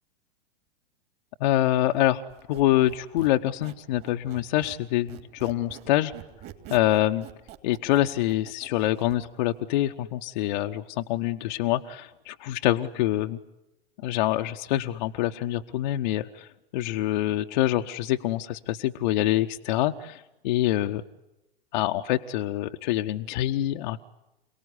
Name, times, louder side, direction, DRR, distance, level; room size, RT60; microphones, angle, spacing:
voice 1, 1.4-6.1 6.7-7.3 7.6-13.4 14.0-21.0 21.7-24.0, left 14 dB, 50° left, 5 dB, 1.1 m, -26 dB
Squeak, 2.3-4.8 5.1-9.2, right 11 dB, 35° right, 3.0 m, -46 dB
28.0 x 19.0 x 9.9 m, 0.95 s
figure-of-eight pair, 105°, 30 cm